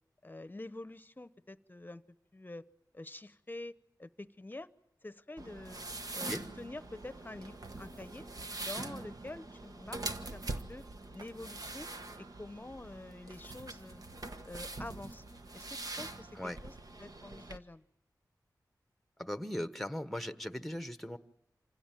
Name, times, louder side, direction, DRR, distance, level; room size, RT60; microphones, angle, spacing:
voice 1, 0.2-2.0 2.3-2.6 2.9-4.7 5.0-5.8 6.1-8.3 8.6-10.0 10.3-10.9 11.1-11.9 12.2-14.0 14.4-15.2 15.5-16.7 17.0-17.8, left 2 dB, 25° left, 15 dB, 0.9 m, -47 dB
sound 1, 5.4-17.6, right 2 dB, 60° right, 1.3 m, -43 dB
voice 2, 19.2-21.2, left 1 dB, 5° left, 11 dB, 1.2 m, -38 dB
27.0 x 16.5 x 9.2 m, 0.88 s
wide cardioid pair, 60°, 7 cm